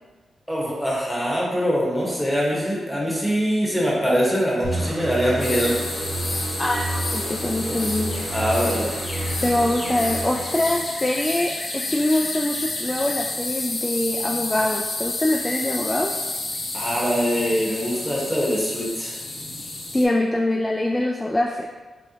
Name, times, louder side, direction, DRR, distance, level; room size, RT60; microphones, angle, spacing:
voice 1, 0.5-5.8 8.3-9.0 16.7-19.2, equal, ahead, -5 dB, 1.2 m, -23 dB
sound 1, 4.6-11.1, right 1 dB, 65° right, 0.8 m, -30 dB
sound 2, 5.4-20.0, left 2 dB, 45° left, 0.8 m, -30 dB
voice 2, 6.6-8.1 9.4-16.2 19.9-21.7, left 1 dB, 20° left, 0 dB, 0.3 m, -24 dB
3.4 x 3.4 x 2.8 m, 1.3 s
cardioid pair, 65°, 0 cm